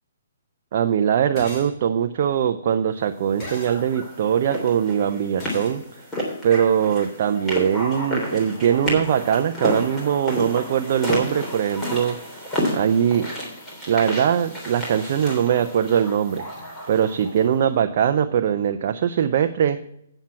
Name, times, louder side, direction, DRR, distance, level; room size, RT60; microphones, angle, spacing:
voice 1, 0.7-5.8 6.4-12.4 12.7-13.3 13.9-16.4 16.9-19.8, right 9 dB, 50° right, 7 dB, 0.6 m, -21 dB
sound 1, 1.4-1.7 3.4-3.8 5.4-5.8, left 1 dB, 30° left, 2.7 m, -38 dB
sound 2, 3.4-17.5, equal, 10° left, 3.3 m, -31 dB
9.0 x 7.3 x 5.7 m, 0.76 s
hypercardioid pair, 145°, 0 cm